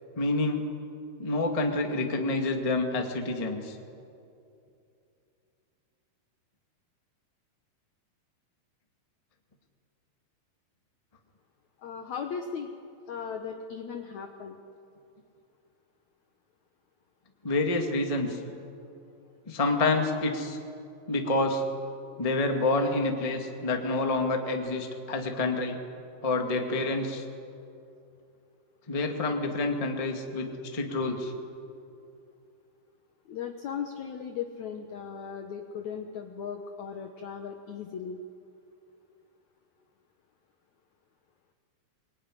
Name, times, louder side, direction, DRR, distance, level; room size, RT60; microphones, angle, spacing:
voice 1, 0.1-0.6 1.2-3.7 17.4-18.4 19.4-20.6 21.1-21.6 22.2-25.8 26.2-27.2 28.9-31.3, left 2 dB, 15° left, 3 dB, 1.1 m, -28 dB
voice 2, 11.8-12.7 13.1-14.6 33.3-38.2, left 7 dB, 60° left, 4 dB, 2.1 m, -37 dB
24.0 x 22.5 x 10.0 m, 2.6 s
omnidirectional pair, 4.4 m